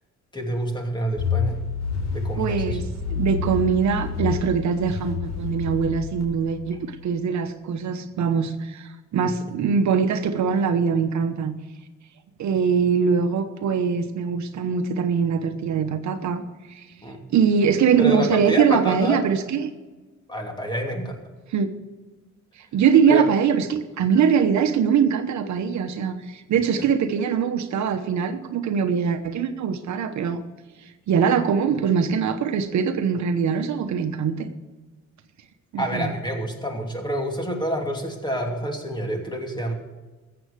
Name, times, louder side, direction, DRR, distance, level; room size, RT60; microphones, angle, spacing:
voice 1, 0.3-1.7 2.1-2.8 9.2-9.3 17.0-17.2 18.0-19.2 20.3-21.2 23.1-23.3 35.8-39.7, equal, 15° left, 2 dB, 2.8 m, -28 dB
sound 1, 1.2-7.0, left 5 dB, 60° left, 4.2 m, -29 dB
voice 2, 2.4-2.8 3.1-11.5 12.4-16.4 16.7-16.9 17.3-19.7 21.5-21.7 22.7-30.4 31.1-34.5 35.7-36.1, right 6 dB, 70° right, 8 dB, 1.1 m, -22 dB
14.0 x 8.0 x 6.7 m, 1.2 s
cardioid pair, 90°, 30 cm